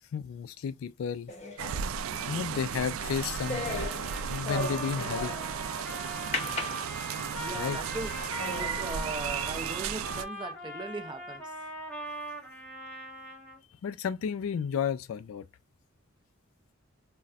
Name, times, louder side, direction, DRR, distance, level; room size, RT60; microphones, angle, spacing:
voice 1, 0.1-1.3 2.3-3.9 4.2-5.4 7.1-7.8 13.8-15.5, left 7 dB, 80° left, 0.3 m, -33 dB
sound 1, 1.3-5.7 6.3-7.4 7.9-8.0 8.4-8.8, left 2 dB, 35° left, 0.8 m, -37 dB
sound 2, 1.6-10.2, right 8 dB, 85° right, 0.3 m, -35 dB
Trumpet, 3.2-13.6, equal, 10° left, 1.2 m, -41 dB
voice 2, 7.3-8.1 8.5-11.5, right 3 dB, 20° right, 0.5 m, -39 dB
4.0 x 2.1 x 2.4 m
head